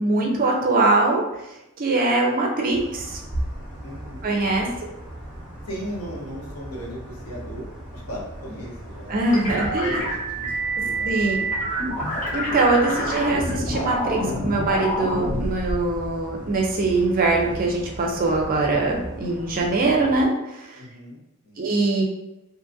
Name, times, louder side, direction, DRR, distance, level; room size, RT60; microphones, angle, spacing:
voice 1, 0.0-1.4 1.8-3.2 4.2-4.9 9.1-10.0 11.0-11.4 12.3-20.8 21.6-22.0, right 2 dB, 40° right, 0 dB, 0.5 m, -22 dB
sound 1, 2.7-20.3, equal, 5° right, 1.1 m, -37 dB
voice 2, 3.8-4.3 5.6-7.7 7.9-9.2 9.6-10.4 10.8-11.7 20.7-21.6, equal, 80° left, -3 dB, 0.9 m, -37 dB
sound 2, 9.3-15.4, equal, 30° left, 0.9 m, -27 dB
2.7 x 2.5 x 2.6 m, 0.92 s
head